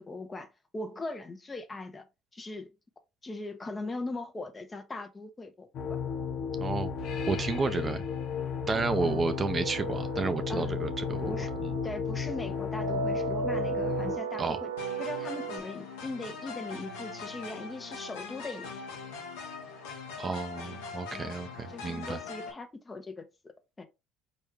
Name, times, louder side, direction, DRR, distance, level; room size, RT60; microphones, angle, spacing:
voice 1, 0.0-2.0 2.3-2.7 3.2-6.0 9.0-9.3 10.5-10.8 11.3-11.5 11.8-14.7 15.0-18.7 21.1-21.3 21.7-23.8, left 2 dB, 25° left, 1.1 m, -40 dB
sound 1, 5.7-14.2, left 6 dB, 60° left, 0.8 m, -34 dB
voice 2, 6.6-6.9 7.3-8.0 8.7-11.3 11.6-11.7 14.4-14.6 20.2-22.2, right 4 dB, 30° right, 0.6 m, -31 dB
sound 2, 8.7-15.6, right 5 dB, 80° right, 0.4 m, -36 dB
sound 3, 14.8-22.5, left 4 dB, 75° left, 1.3 m, -41 dB
4.4 x 3.2 x 3.4 m
hypercardioid pair, 60°, 0 cm